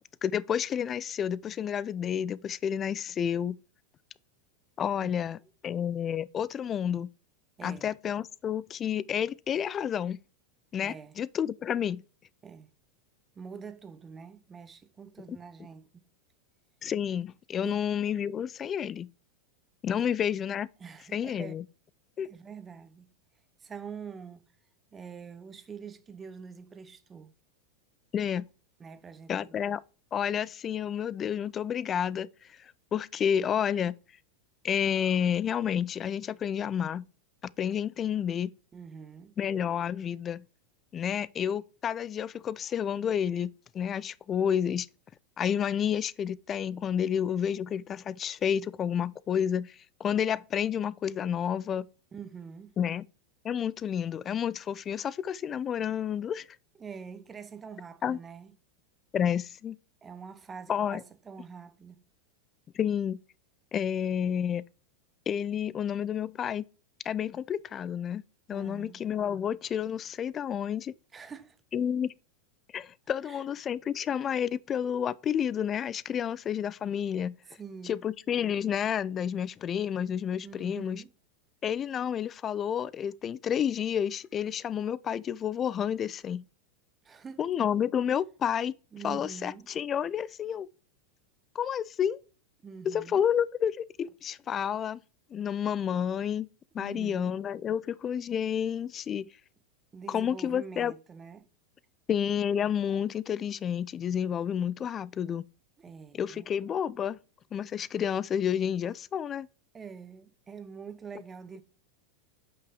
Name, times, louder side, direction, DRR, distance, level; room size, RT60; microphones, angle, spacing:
voice 1, 0.2-3.6 4.8-5.4 5.6-7.1 7.6-10.2 10.7-12.0 15.3-15.4 16.8-19.1 19.8-20.7 21.1-21.6 22.2-22.3 28.1-28.5 29.3-29.8 30.1-32.3 32.6-34.0 34.6-37.1 37.6-38.5 39.4-40.4 40.9-44.9 45.4-51.9 52.8-53.0 53.4-56.5 58.0-58.2 59.1-59.8 60.7-61.0 62.7-63.2 63.7-64.6 65.3-66.6 67.0-68.2 68.5-70.9 71.7-72.1 72.7-77.4 77.8-81.0 81.6-86.5 87.4-88.7 89.0-90.7 91.5-92.2 92.8-95.0 95.3-96.5 96.7-99.3 100.1-100.9 102.1-105.4 106.1-107.2 107.5-109.5, left 8 dB, 30° left, 0.4 m, -30 dB
voice 2, 5.0-5.4 7.6-7.9 10.8-11.1 12.4-12.7 13.4-16.0 17.6-17.8 20.0-20.2 20.8-21.5 22.2-23.1 23.6-24.4 24.9-27.3 28.8-29.6 38.7-39.3 47.0-47.1 52.1-52.7 56.8-58.5 60.0-62.0 68.5-69.0 71.1-71.6 73.2-73.4 77.6-78.0 80.4-81.1 87.0-87.4 88.9-89.7 92.6-93.2 96.8-97.3 99.9-101.5 105.8-106.5 109.7-111.6, right 6 dB, 20° right, 0.9 m, -45 dB
8.5 x 5.5 x 3.8 m
figure-of-eight pair, 90°, 0 cm